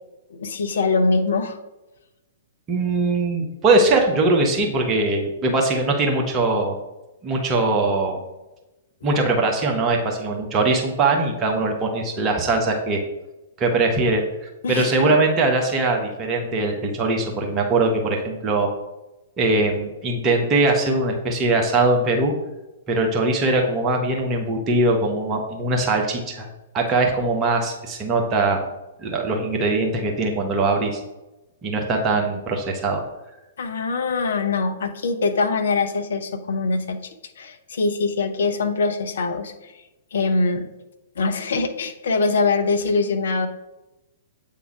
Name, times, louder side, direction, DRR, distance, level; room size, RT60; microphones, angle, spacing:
voice 1, 0.3-1.6 14.6-15.1 33.6-37.0 37.4-39.7 40.1-40.7 41.2-43.5, left 3 dB, 60° left, 6 dB, 0.8 m, -23 dB
voice 2, 2.7-6.8 7.2-8.2 9.0-13.0 13.6-14.2 14.7-18.7 19.4-22.3 22.9-26.5 26.7-28.6 29.0-31.0 31.6-33.0, right 2 dB, 25° right, 1 dB, 1.1 m, -21 dB
8.3 x 3.8 x 4.7 m, 1.0 s
figure-of-eight pair, 110°, 0 cm